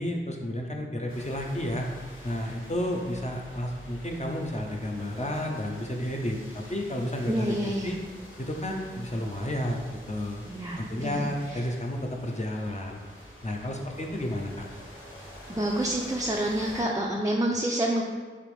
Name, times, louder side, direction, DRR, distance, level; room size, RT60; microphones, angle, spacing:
voice 1, 0.0-1.9 2.2-8.0 8.4-10.4 10.8-13.0 13.4-14.7, left 1 dB, 35° left, 1 dB, 0.6 m, -31 dB
sound 1, 1.1-16.8, equal, 90° left, 1.2 m, -47 dB
voice 2, 7.3-7.9 10.5-11.6 15.5-18.0, right 1 dB, 15° right, -3 dB, 0.4 m, -28 dB
3.4 x 2.9 x 4.8 m, 1.5 s
wide cardioid pair, 45°, 21 cm